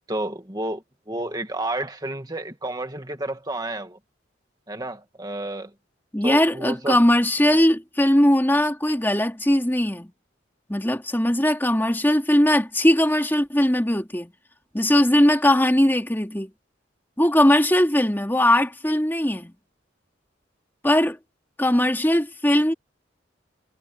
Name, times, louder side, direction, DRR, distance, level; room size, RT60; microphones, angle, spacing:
voice 1, 0.1-4.0 4.7-5.7 6.2-7.0, right 1 dB, 20° right, 1.9 m, -30 dB
voice 2, 6.1-10.1 10.7-14.3 14.7-16.5 17.2-19.5 20.8-21.2 21.6-22.7, left 1 dB, 10° left, 2.3 m, -20 dB
head